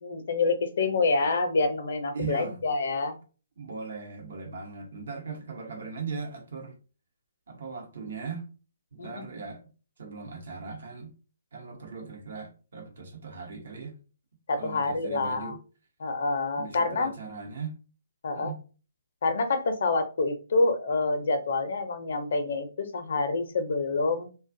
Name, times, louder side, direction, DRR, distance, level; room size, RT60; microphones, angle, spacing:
voice 1, 0.0-3.2 9.0-9.2 14.5-15.5 16.0-17.1 18.2-18.5 19.2-24.3, left 3 dB, 60° left, 0.5 m, -27 dB
voice 2, 2.1-2.6 3.6-6.8 7.5-8.5 8.9-9.7 10.0-11.1 11.5-14.0 14.6-15.6 16.6-17.8 18.3-18.6, right 5 dB, 65° right, 0.9 m, -38 dB
2.4 x 2.2 x 2.6 m
hypercardioid pair, 140°, 0 cm